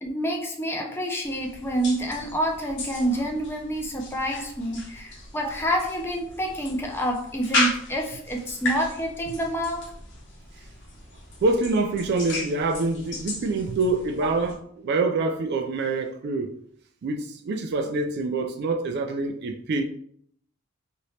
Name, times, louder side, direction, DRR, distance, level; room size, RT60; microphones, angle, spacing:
voice 1, 0.0-9.8, right 1 dB, 10° left, 0.4 m, -28 dB
sound 1, 1.2-14.5, left 2 dB, 55° left, 0.9 m, -35 dB
voice 2, 11.4-16.5 17.0-19.8, right 3 dB, 50° right, 0.3 m, -26 dB
2.9 x 2.6 x 3.2 m
head